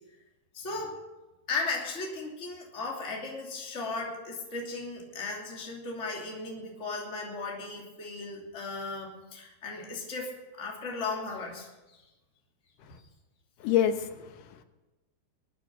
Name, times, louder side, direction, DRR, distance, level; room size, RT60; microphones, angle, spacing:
voice 1, 0.5-1.0 1.5-12.0, left 3 dB, 20° left, -2 dB, 2.9 m, -36 dB
voice 2, 13.6-14.6, left 10 dB, 80° left, 7 dB, 2.7 m, -28 dB
21.5 x 9.5 x 6.1 m, 1.1 s
omnidirectional pair, 3.7 m